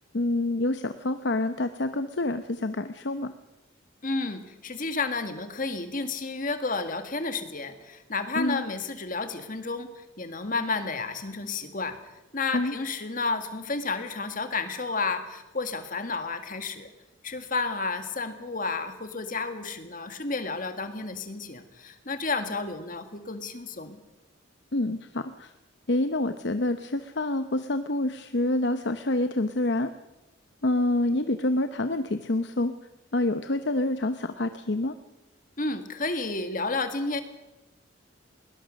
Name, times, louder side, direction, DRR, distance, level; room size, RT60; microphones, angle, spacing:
voice 1, 0.1-3.3 8.3-8.6 12.5-12.7 24.7-25.5 25.9-29.9 30.6-32.7 33.1-35.0, left 2 dB, 60° left, 9 dB, 0.8 m, -27 dB
voice 2, 4.0-12.0 12.3-16.9 17.2-24.0 35.6-37.2, left 3 dB, 40° left, 8 dB, 1.8 m, -31 dB
21.0 x 19.5 x 6.5 m, 1.0 s
head